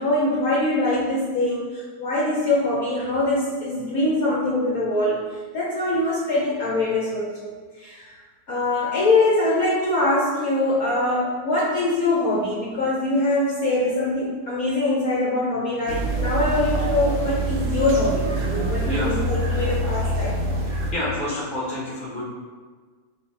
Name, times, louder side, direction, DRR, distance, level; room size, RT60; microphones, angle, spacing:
voice 1, 0.0-5.2 5.5-7.5 7.8-8.2 8.5-20.4, left 2 dB, 65° left, -6 dB, 0.9 m, -23 dB
sound 1, 15.9-20.9, right 2 dB, 75° right, 0.7 m, -25 dB
voice 2, 20.6-22.2, left 1 dB, 10° left, -8 dB, 0.3 m, -29 dB
3.3 x 2.6 x 4.4 m, 1.4 s
omnidirectional pair, 2.1 m